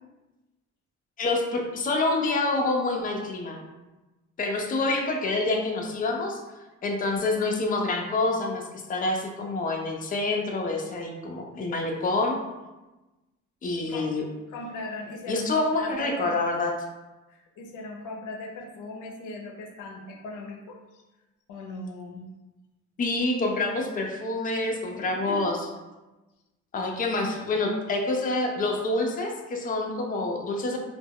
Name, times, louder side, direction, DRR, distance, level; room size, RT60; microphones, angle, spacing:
voice 1, 1.2-3.6 4.4-6.4 6.8-12.4 13.6-14.2 15.3-16.7 23.0-25.6 26.7-30.8, left 2 dB, 30° left, 1 dB, 0.4 m, -27 dB
voice 2, 13.8-14.1 14.5-16.4 17.3-21.0 21.5-22.3 25.0-25.5, left 2 dB, 80° left, 2 dB, 0.5 m, -39 dB
2.2 x 2.0 x 3.5 m, 1.1 s
cardioid pair, 90°, 30 cm